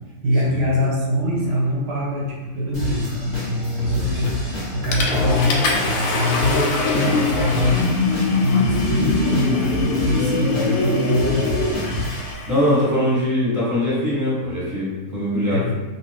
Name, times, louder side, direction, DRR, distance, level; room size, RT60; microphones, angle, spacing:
voice 1, 0.2-4.4 4.7-12.0 15.5-15.8, left 1 dB, 60° right, -3 dB, 0.8 m, -23 dB
sound 1, 2.7-12.3, left 2 dB, 25° left, 0.8 m, -30 dB
voice 2, 3.9-4.3 12.5-15.7, left 1 dB, 15° right, -9 dB, 0.9 m, -22 dB
Water / Toilet flush, 4.2-4.5 4.9-12.8, left 3 dB, 85° left, 1.1 m, -26 dB
sound 2, 6.3-11.7, left 3 dB, 65° left, 0.8 m, -23 dB
2.8 x 2.2 x 3.3 m, 1.1 s
omnidirectional pair, 1.5 m